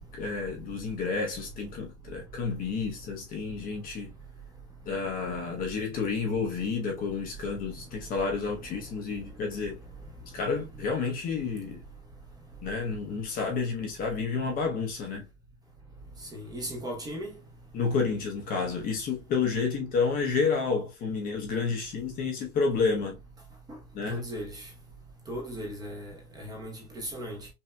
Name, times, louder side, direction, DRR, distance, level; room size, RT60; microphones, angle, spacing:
voice 1, 0.0-4.1 4.8-9.8 10.3-11.8 12.6-15.2 17.7-23.2 23.9-24.2, left 5 dB, 25° left, 0.8 m, -30 dB
voice 2, 16.3-17.3 24.1-24.7 25.3-27.5, equal, 10° right, 0.9 m, -37 dB
5.5 x 2.7 x 2.2 m
supercardioid pair, 165°, 34 cm